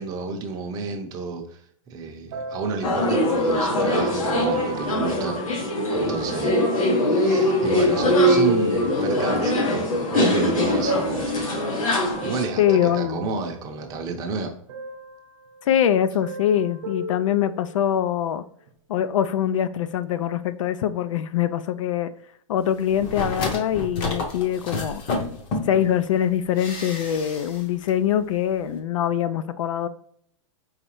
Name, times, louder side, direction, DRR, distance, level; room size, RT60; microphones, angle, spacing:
voice 1, 0.0-1.6 1.9-5.4 5.9-6.6 7.0-11.9 12.2-14.5, right 4 dB, 20° right, 0.6 m, -31 dB
sound 1, 2.3-5.9 6.4-9.9 10.6-11.3 11.9-14.2 14.7-15.7 16.0-18.0 18.7-18.8, right 2 dB, 60° right, 0.7 m, -36 dB
sound 2, 2.8-12.4, left 1 dB, 90° left, 1.5 m, -22 dB
voice 2, 12.6-13.3 15.7-18.4 18.9-22.1 22.5-25.0 25.7-29.9, left 10 dB, 70° left, 0.4 m, -23 dB
sound 3, 22.9-25.9 26.6-27.6 27.9-28.0, left 3 dB, 30° left, 0.7 m, -30 dB
4.9 x 3.1 x 3.0 m
supercardioid pair, 160°, 17 cm